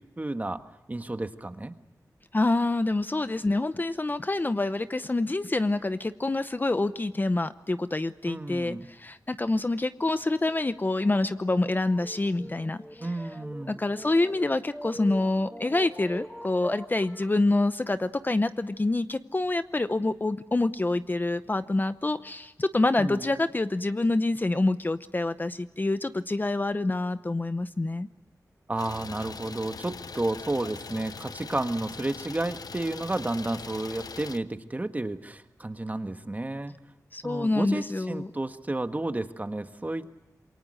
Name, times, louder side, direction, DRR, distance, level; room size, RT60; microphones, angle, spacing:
voice 1, 0.2-0.6 0.9-1.7 8.3-8.9 13.0-13.8 23.0-23.3 28.7-36.7 37.2-40.1, right 2 dB, 25° right, 8 dB, 1.5 m, -32 dB
voice 2, 2.3-12.8 13.7-28.1 37.1-38.3, left 2 dB, 30° left, 11 dB, 0.7 m, -27 dB
sound 1, 10.1-17.4, equal, 5° left, 2.1 m, -43 dB
Idling, 28.8-34.4, left 5 dB, 75° left, 0.8 m, -41 dB
27.5 x 23.0 x 6.5 m, 1.1 s
wide cardioid pair, 90°, 7 cm